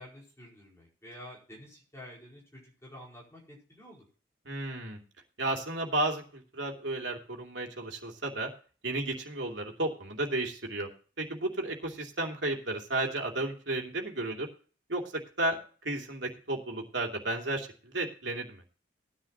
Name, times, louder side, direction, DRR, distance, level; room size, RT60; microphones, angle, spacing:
voice 1, 0.0-4.1, left 1 dB, 15° left, -3 dB, 4.9 m, -49 dB
voice 2, 4.4-5.0 5.4-8.5 8.8-10.9 11.2-14.5 14.9-15.6 15.8-18.6, right 2 dB, 70° right, 2 dB, 2.7 m, -33 dB
18.0 x 10.0 x 2.8 m, 0.39 s
head